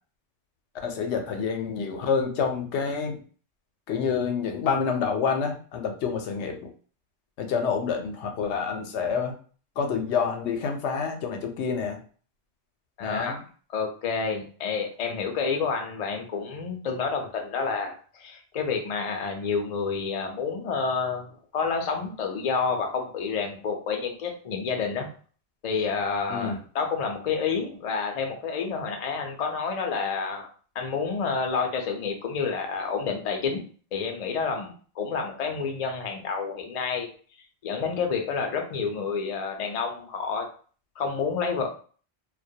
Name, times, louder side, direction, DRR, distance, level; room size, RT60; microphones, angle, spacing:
voice 1, 0.8-3.2 3.9-6.7 7.4-9.3 9.8-12.0 13.0-13.4 26.3-26.6, left 6 dB, 90° left, 4 dB, 0.9 m, -28 dB
voice 2, 13.0-13.4 13.7-25.1 25.6-30.5 30.7-33.6 33.9-37.1 37.6-40.5 41.0-41.8, left 5 dB, 55° left, 3 dB, 0.4 m, -29 dB
2.2 x 2.1 x 2.6 m, 0.42 s
omnidirectional pair, 1.1 m